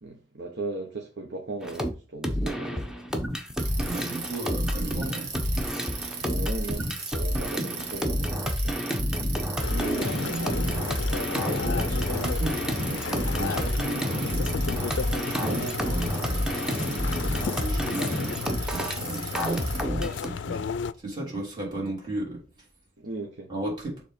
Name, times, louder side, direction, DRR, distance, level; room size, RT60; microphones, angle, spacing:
voice 1, 0.0-2.9 6.1-8.8 15.4-15.8 16.6-17.1 23.0-23.5, right 2 dB, 80° right, 1.2 m, -37 dB
sound 1, 1.6-1.9 2.2-20.3, equal, 5° right, 0.9 m, -29 dB
Bicycle, 3.6-19.8, right 6 dB, 60° right, 1.7 m, -38 dB
voice 2, 3.8-5.6 9.7-10.9 11.4-14.6 15.2-16.5 16.9-22.7 23.5-24.0, right 2 dB, 25° right, 3.5 m, -35 dB
sound 2, 9.6-20.9, left 6 dB, 85° left, 0.4 m, -34 dB
6.9 x 3.6 x 5.2 m
head